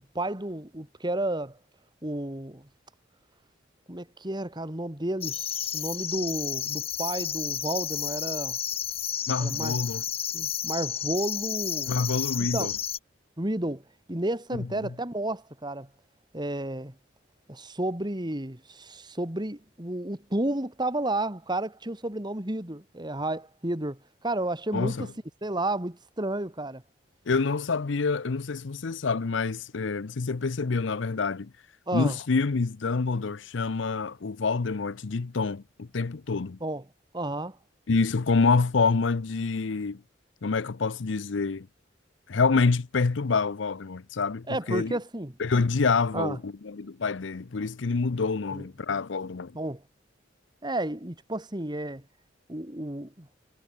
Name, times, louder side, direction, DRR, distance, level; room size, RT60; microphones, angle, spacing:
voice 1, 0.1-1.6 2.0-2.7 3.9-5.4 5.7-8.6 9.4-9.8 10.3-11.9 12.4-12.7 13.4-15.9 16.3-16.9 17.5-25.1 25.4-26.8 31.9-32.2 36.6-36.8 37.1-37.6 44.5-45.3 46.1-46.4 48.5-48.6 49.5-49.8 50.6-52.0 52.5-53.3, right 1 dB, 25° right, 2.6 m, -32 dB
sound 1, 5.2-13.0, left 10 dB, 30° left, 0.7 m, -32 dB
voice 2, 9.3-10.0 11.9-12.7 14.6-14.9 24.7-25.1 27.3-31.5 31.9-36.6 37.9-40.0 40.4-41.7 42.3-45.0 45.4-49.5, left 4 dB, 75° left, 0.7 m, -27 dB
head